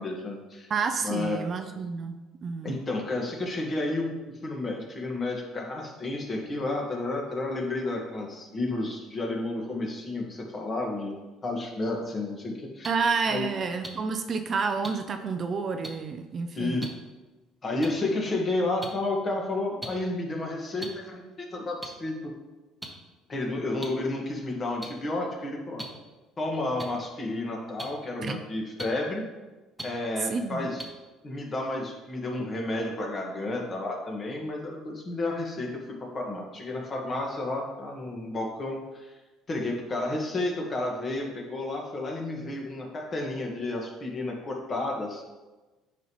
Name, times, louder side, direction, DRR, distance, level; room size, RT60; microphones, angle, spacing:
voice 1, 0.0-0.7 1.0-1.4 2.6-4.1 4.4-11.1 11.4-12.9 13.3-13.4 16.5-16.9 17.6-22.3 23.3-25.9 26.4-29.2 29.8-30.8 31.2-39.1 39.5-45.2, left 2 dB, 30° left, 0 dB, 1.7 m, -31 dB
voice 2, 0.7-2.8 12.8-16.9 28.2-28.4 30.2-30.7, right 5 dB, 40° right, 7 dB, 0.6 m, -30 dB
sound 1, 12.8-12.9 13.8-13.9 14.8-14.9 15.8-15.9 16.8-16.9 17.8-17.9 18.8-18.9 19.8-19.9 20.8-20.9 21.8-21.9 22.8-22.9 23.8-23.9 24.8-24.9 25.8-25.9 26.8-26.9 27.8-27.9 28.8-28.9 29.8-29.9 30.8-30.9, right 1 dB, 5° right, 1.2 m, -36 dB
9.1 x 5.6 x 3.2 m, 1.1 s
cardioid pair, 115°, 0 cm